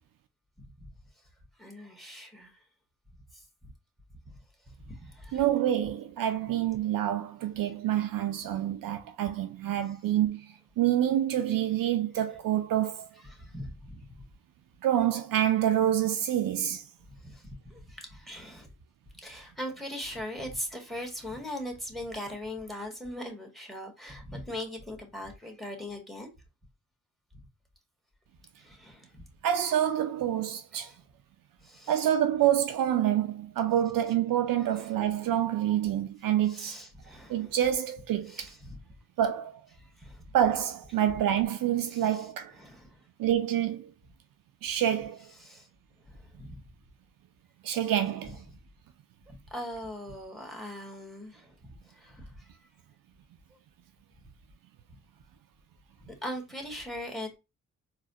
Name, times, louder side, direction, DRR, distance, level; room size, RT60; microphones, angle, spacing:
voice 1, 0.6-0.9 1.6-2.5 3.3-3.4 4.8-5.4 7.9-8.1 13.2-14.2 17.2-18.7 19.2-26.3 28.6-29.2 30.8-31.0 31.6-32.1 34.7-34.9 36.5-37.6 38.2-38.8 39.8-40.2 41.8-42.3 42.5-43.1 45.4-45.7 46.1-46.6 49.3-51.6 51.9-52.5 53.5-53.6 56.0-57.4, left 1 dB, ahead, 1.6 m, -41 dB
voice 2, 5.3-10.4 10.8-13.1 14.8-16.8 29.4-30.9 31.9-36.8 37.3-38.4 39.2-39.5 40.3-42.5 43.2-43.9 44.6-45.3 47.6-48.4, right 11 dB, 70° right, 0.5 m, -27 dB
4.0 x 2.3 x 2.7 m
supercardioid pair, 45°, 35 cm